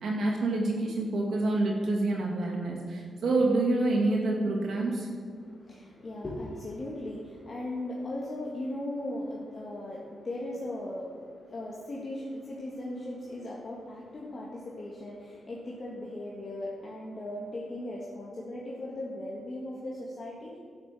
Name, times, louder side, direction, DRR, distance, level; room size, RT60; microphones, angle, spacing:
voice 1, 0.0-5.1, right 2 dB, 70° right, -3 dB, 2.4 m, -27 dB
voice 2, 5.4-20.6, left 1 dB, 40° left, -4 dB, 1.8 m, -38 dB
11.0 x 6.5 x 7.7 m, 2.2 s
cardioid pair, 110°, 0 cm